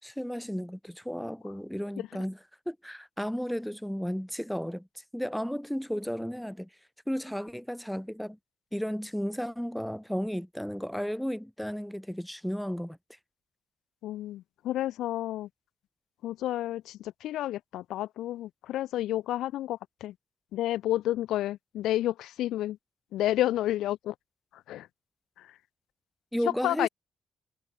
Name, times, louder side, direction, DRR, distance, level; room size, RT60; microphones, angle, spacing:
voice 1, 0.0-2.4 2.6-6.7 7.1-8.4 8.7-13.0 26.3-26.9, equal, ahead, 3.5 m, -33 dB
voice 2, 14.0-15.5 16.2-20.1 20.5-22.8 23.1-24.1 24.5-24.9 25.4-25.5 26.4-26.9, left 14 dB, 85° left, 1.7 m, -30 dB
cardioid pair, 90°, 0 cm